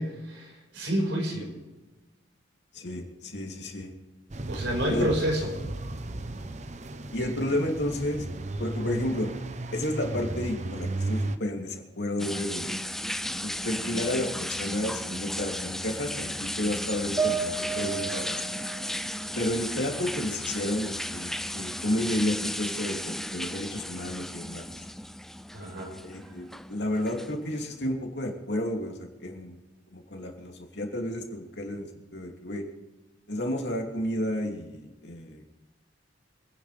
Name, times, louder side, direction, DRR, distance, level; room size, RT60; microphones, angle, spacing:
voice 1, 0.0-1.5 4.5-5.5 25.5-25.9, right 1 dB, 90° right, 1 dB, 5.1 m, -29 dB
voice 2, 2.7-3.9 4.9-5.1 7.1-8.3 8.6-9.3 9.7-12.8 13.4-18.4 19.3-24.7 26.0-29.6 29.9-32.6 33.3-35.5, left 1 dB, 70° left, 1 dB, 2.8 m, -31 dB
sound 1, 4.3-11.4, right 2 dB, 40° right, 0.8 m, -34 dB
sound 2, 12.2-27.7, left 1 dB, ahead, 0.4 m, -35 dB
sound 3, 17.2-20.6 21.0-22.0, right 5 dB, 15° right, 2.6 m, -35 dB
27.0 x 9.9 x 3.4 m, 1.2 s
head